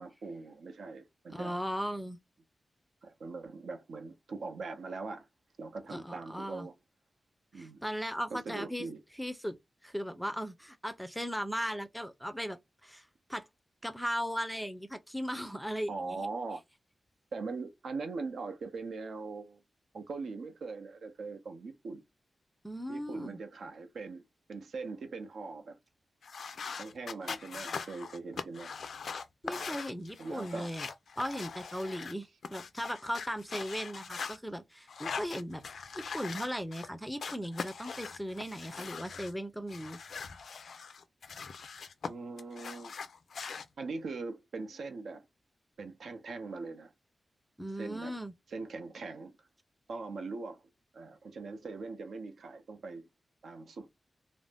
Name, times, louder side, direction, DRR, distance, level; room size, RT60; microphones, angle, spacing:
voice 1, 0.0-1.6 3.0-5.3 5.6-6.7 7.5-7.8 8.3-9.0 15.9-16.6 17.3-19.6 19.9-22.0 22.9-24.2 24.5-25.8 26.8-28.7 29.5-29.7 30.2-30.7 42.0-42.9 43.8-45.2 45.8-46.9 47.8-48.1 48.5-49.4 49.9-50.6 50.9-53.0 53.4-53.9, right 3 dB, 80° right, 0.6 m, -41 dB
voice 2, 1.3-2.2 5.9-6.7 7.5-8.9 9.2-9.6 9.8-13.5 13.8-16.2 22.6-23.4 29.4-30.9 31.2-35.6 35.9-40.0 47.6-48.3, equal, ahead, 0.4 m, -37 dB
sound 1, 26.2-32.1 32.4-34.4 34.9-36.9 37.2-39.3 39.7-42.1 42.4-43.7, left 5 dB, 75° left, 0.4 m, -42 dB
2.5 x 2.0 x 3.3 m
wide cardioid pair, 110°, 0 cm